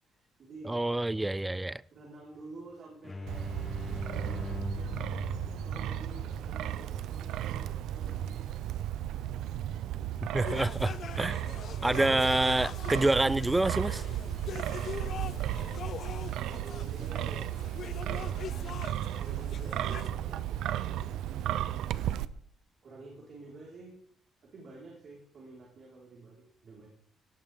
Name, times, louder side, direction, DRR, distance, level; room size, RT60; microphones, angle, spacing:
voice 1, 0.1-0.8 1.9-5.0 5.5-8.5 9.5-9.8 14.4-17.5 17.8-21.5 22.8-23.9 24.4-26.9, right 2 dB, 55° right, 5.4 m, -50 dB
voice 2, 0.7-1.8 10.3-11.5 11.8-14.0, right 2 dB, 15° right, 0.5 m, -27 dB
sound 1, 3.0-8.5, left 3 dB, 25° left, 1.0 m, -42 dB
Wind, 3.3-22.3, right 12 dB, 85° right, 0.6 m, -34 dB
sound 2, 10.4-20.1, left 8 dB, 60° left, 0.5 m, -43 dB
18.5 x 16.5 x 3.9 m
cardioid pair, 90°, 0 cm